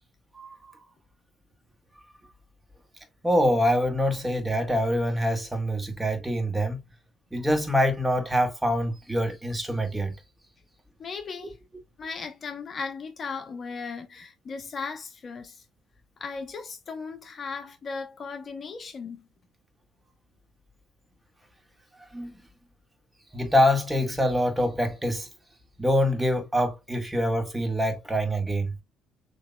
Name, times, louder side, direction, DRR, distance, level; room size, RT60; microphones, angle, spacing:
voice 1, 0.3-0.7 3.2-6.8 7.3-10.2 22.1-22.3 23.3-25.3 25.8-28.8, equal, 10° right, 1.8 m, -25 dB
voice 2, 11.0-11.6 12.0-15.6 16.2-19.3, left 5 dB, 45° left, 0.8 m, -37 dB
6.6 x 3.0 x 2.2 m
supercardioid pair, 70°, 0 cm